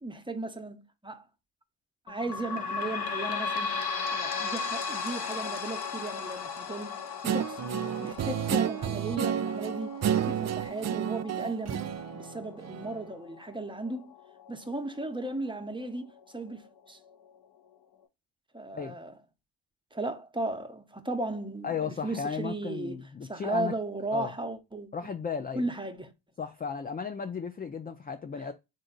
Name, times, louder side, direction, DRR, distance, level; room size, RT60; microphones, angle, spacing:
voice 1, 0.0-1.2 2.1-3.8 4.1-7.0 7.2-7.6 8.0-14.1 14.5-17.0 18.5-19.2 19.9-23.0 23.3-24.9 25.5-26.1, right 2 dB, 10° right, 0.8 m, -36 dB
sound 1, 2.1-15.2 15.8-15.9 16.2-16.3 17.1-17.2, left 5 dB, 50° left, 1.0 m, -37 dB
Guitar, 7.2-13.1, right 9 dB, 35° right, 0.5 m, -31 dB
voice 2, 21.6-23.7 24.1-24.3 24.9-25.6 26.4-28.5, left 6 dB, 20° left, 0.4 m, -35 dB
3.7 x 2.7 x 3.9 m
supercardioid pair, 55°, 48 cm